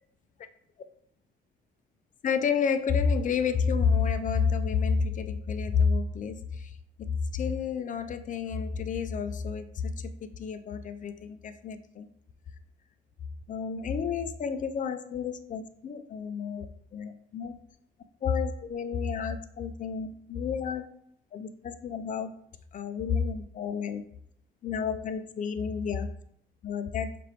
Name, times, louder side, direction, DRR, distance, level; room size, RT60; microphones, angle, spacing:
voice 1, 2.2-6.7 7.0-12.1 13.5-17.6 18.2-20.9 21.3-22.3 22.7-24.0 24.6-26.1 26.6-27.1, left 6 dB, 40° left, 10 dB, 0.4 m, -30 dB
4.4 x 2.5 x 3.2 m, 0.71 s
cardioid pair, 90°, 20 cm